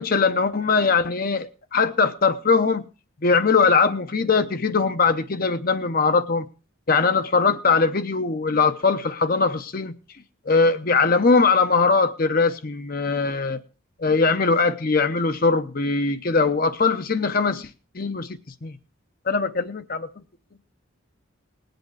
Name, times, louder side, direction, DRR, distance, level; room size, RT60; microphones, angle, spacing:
voice 1, 0.0-2.8 3.2-6.5 6.9-9.9 10.5-13.6 14.0-17.7 17.9-18.3 18.6-18.8 19.3-20.1, left 4 dB, 45° left, 10 dB, 0.7 m, -21 dB
19.5 x 7.9 x 4.7 m, 0.34 s
head